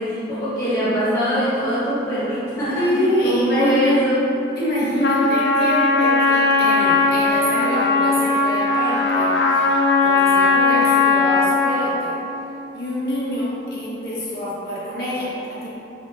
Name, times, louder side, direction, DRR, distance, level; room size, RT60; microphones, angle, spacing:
voice 1, 0.0-2.9 3.2-4.2 4.8-5.0, equal, 15° left, -14 dB, 0.8 m, -22 dB
voice 2, 2.7-4.0 4.5-12.2 12.7-15.7, left 1 dB, 60° left, -8 dB, 1.2 m, -25 dB
Trumpet, 5.0-11.9, left 3 dB, 80° left, 0.5 m, -18 dB
5.5 x 3.5 x 2.5 m, 2.9 s
head